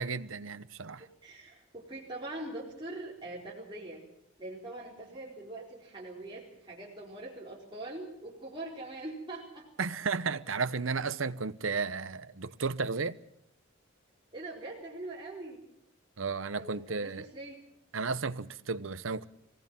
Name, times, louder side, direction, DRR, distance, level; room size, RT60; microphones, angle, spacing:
voice 1, 0.0-1.1 9.8-13.2 16.2-17.3 17.9-19.3, right 4 dB, 75° right, 0.9 m, -33 dB
voice 2, 1.2-4.0 4.4-9.7 14.3-15.6 16.6-17.6, right 2 dB, 25° right, 4.3 m, -42 dB
24.0 x 18.5 x 7.4 m
head